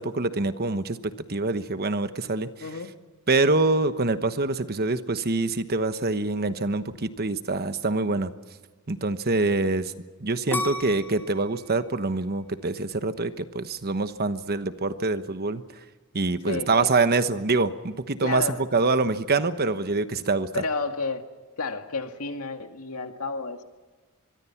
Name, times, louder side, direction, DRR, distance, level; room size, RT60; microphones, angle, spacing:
voice 1, 0.0-2.5 3.3-8.3 8.9-9.9 10.2-15.6 16.1-18.4 18.7-20.5, right 3 dB, 45° right, 10 dB, 1.1 m, -25 dB
voice 2, 2.6-2.9 16.5-16.9 18.2-18.6 20.5-21.3 21.6-23.6, left 3 dB, 75° left, 6 dB, 2.0 m, -31 dB
sound 1, 10.5-13.4 13.9-14.4, left 1 dB, 10° left, 2.0 m, -34 dB
25.0 x 23.0 x 5.9 m, 1.3 s
head